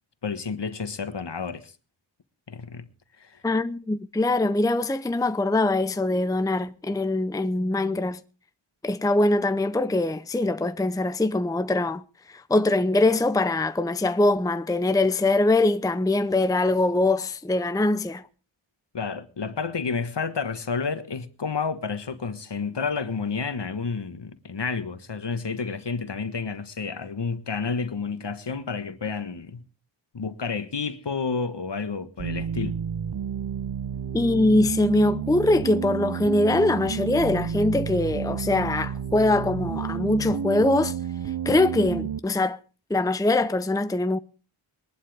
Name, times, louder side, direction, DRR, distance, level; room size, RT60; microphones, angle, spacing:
voice 1, 0.2-1.7 2.5-2.9 3.2-3.4 18.9-29.6 30.1-32.8, left 5 dB, 55° left, 1.5 m, -30 dB
voice 2, 3.4-8.2 8.8-12.0 12.3-18.2 34.1-40.9 41.4-42.6 42.9-44.2, left 2 dB, 5° left, 0.7 m, -23 dB
sound 1, 32.2-42.2, right 8 dB, 50° right, 0.8 m, -31 dB
22.0 x 11.5 x 3.5 m
cardioid pair, 50°, 49 cm